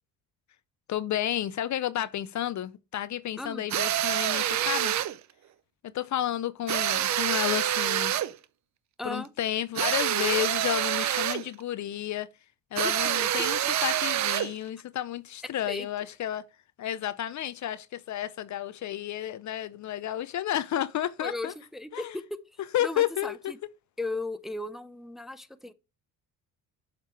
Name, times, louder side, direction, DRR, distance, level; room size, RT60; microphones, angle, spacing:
voice 1, 0.9-4.9 5.9-8.1 9.0-12.3 12.7-16.5 16.8-21.5 21.9-22.1 22.7-23.4, left 12 dB, 50° left, 0.5 m, -31 dB
sound 1, 3.7-5.2 6.7-8.4 9.8-11.5 12.8-14.6, right 12 dB, 50° right, 0.6 m, -27 dB
voice 2, 9.0-9.3 12.8-12.9 15.4-15.9 21.2-22.2 22.5-23.6 24.0-25.7, left 2 dB, ahead, 0.6 m, -36 dB
7.3 x 3.7 x 4.5 m
supercardioid pair, 75°, 38 cm